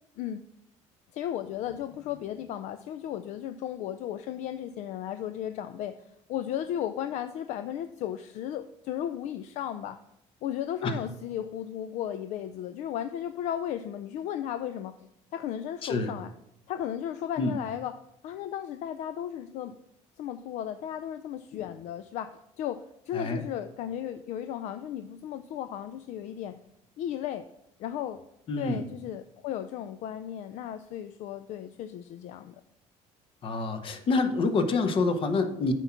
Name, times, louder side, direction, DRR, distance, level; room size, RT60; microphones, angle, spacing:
voice 1, 1.1-10.0 10.4-15.0 15.3-16.3 16.7-19.8 20.2-26.6 27.0-27.5 27.8-28.2 28.6-32.6, left 10 dB, 65° left, 10 dB, 0.4 m, -35 dB
voice 2, 15.8-16.1 17.4-17.6 23.1-23.4 28.5-28.8 33.4-35.7, left 3 dB, 45° left, 8 dB, 1.0 m, -27 dB
7.8 x 4.6 x 5.8 m, 0.79 s
cardioid pair, 125°, 13 cm